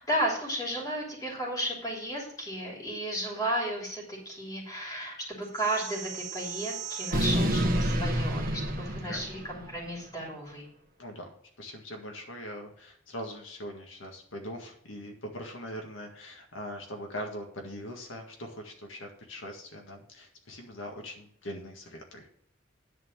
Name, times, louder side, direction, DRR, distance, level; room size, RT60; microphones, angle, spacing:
voice 1, 0.0-10.7, right 1 dB, 20° left, -2 dB, 3.0 m, -33 dB
sound 1, 5.6-9.9, right 1 dB, 45° right, 1.4 m, -30 dB
voice 2, 11.0-22.3, equal, 85° left, 1 dB, 1.9 m, -41 dB
10.5 x 4.5 x 7.3 m, 0.67 s
head